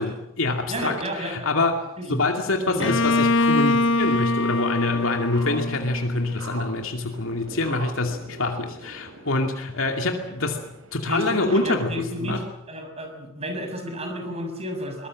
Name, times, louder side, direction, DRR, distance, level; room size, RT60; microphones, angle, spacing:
voice 1, 0.0-10.6 10.9-12.4, left 2 dB, 80° left, 3 dB, 2.5 m, -26 dB
voice 2, 0.7-1.6 2.0-2.2 2.7-3.0 11.1-12.4 12.7-15.1, equal, 30° right, 5 dB, 6.4 m, -31 dB
sound 1, 2.4-12.2, right 2 dB, 75° right, 5.4 m, -43 dB
Bowed string instrument, 2.8-6.5, left 2 dB, 65° left, 0.9 m, -23 dB
23.0 x 20.5 x 7.6 m, 0.78 s
head